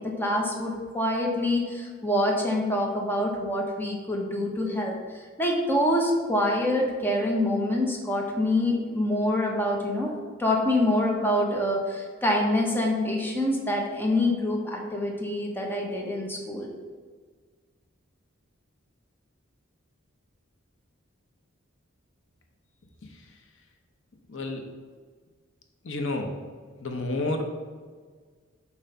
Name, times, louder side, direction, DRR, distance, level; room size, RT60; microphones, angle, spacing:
voice 1, 0.0-16.7, left 1 dB, 10° left, 0 dB, 0.9 m, -26 dB
voice 2, 24.3-24.7 25.8-26.4 26.8-27.7, left 2 dB, 65° left, 4 dB, 0.8 m, -30 dB
7.5 x 3.1 x 5.5 m, 1.6 s
head